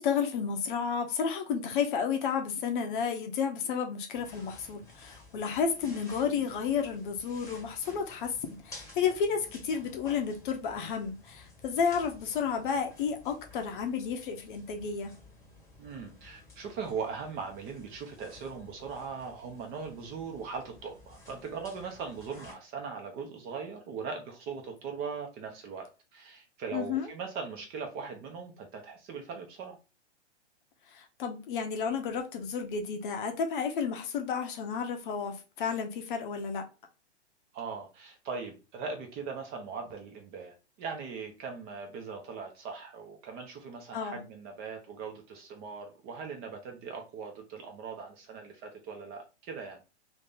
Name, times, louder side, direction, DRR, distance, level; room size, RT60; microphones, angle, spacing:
voice 1, 0.0-15.1 26.7-27.1 30.9-36.6 43.9-44.1, left 6 dB, 45° left, 0.8 m, -32 dB
sound 1, 4.1-22.5, left 2 dB, 10° left, 1.2 m, -53 dB
voice 2, 15.8-29.8 37.5-49.8, right 5 dB, 25° right, 0.8 m, -40 dB
2.9 x 2.8 x 3.6 m
hypercardioid pair, 125°, 34 cm